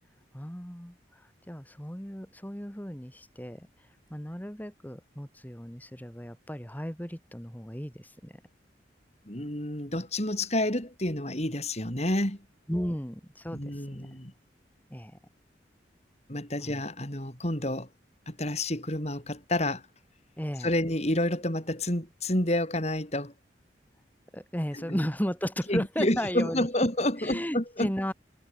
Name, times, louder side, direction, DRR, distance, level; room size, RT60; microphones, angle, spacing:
voice 1, 0.3-3.7 4.1-8.4 12.7-14.2 14.9-15.2 16.6-16.8 20.4-20.7 24.3-26.7 27.2-28.1, equal, 10° left, 5.1 m, -35 dB
voice 2, 9.2-12.4 13.5-14.3 16.3-17.9 18.3-19.8 20.6-23.3 24.7-25.0 25.7-27.9, left 1 dB, 40° left, 6.7 m, -29 dB
head